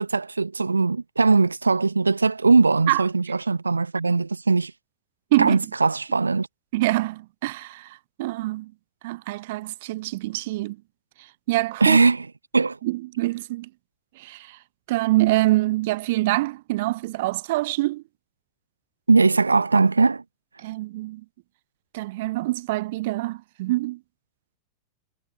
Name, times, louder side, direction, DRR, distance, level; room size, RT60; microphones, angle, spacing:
voice 1, 0.0-4.7 5.4-6.5 11.8-12.3 12.5-12.8 19.1-20.2, right 4 dB, 80° right, 1.0 m, -20 dB
voice 2, 6.7-8.7 9.0-10.8 11.5-12.0 12.8-13.7 14.2-14.6 14.9-18.0 20.6-21.2 21.9-24.0, right 19 dB, 50° right, 0.8 m, -25 dB
figure-of-eight pair, 90°, 0 cm